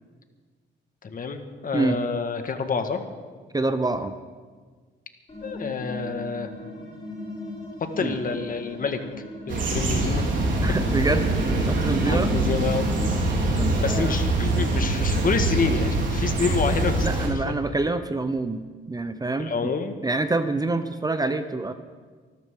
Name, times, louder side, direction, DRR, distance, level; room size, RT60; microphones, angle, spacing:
voice 1, 1.0-3.0 5.4-6.5 7.8-9.0 9.5-10.3 12.0-12.9 13.8-17.5 19.4-19.9, left 5 dB, 45° left, 6 dB, 1.7 m, -28 dB
voice 2, 3.5-4.1 8.0-8.1 10.6-11.3 11.7-12.3 13.5-14.2 17.0-18.6 18.9-19.7 20.0-21.7, right 2 dB, 20° right, 10 dB, 0.8 m, -26 dB
sound 1, 5.3-13.8, left 2 dB, 25° left, 6.1 m, -37 dB
sound 2, 9.5-17.3, right 2 dB, 70° right, 4.2 m, -24 dB
24.0 x 13.5 x 3.8 m, 1.5 s
cardioid pair, 90°, 20 cm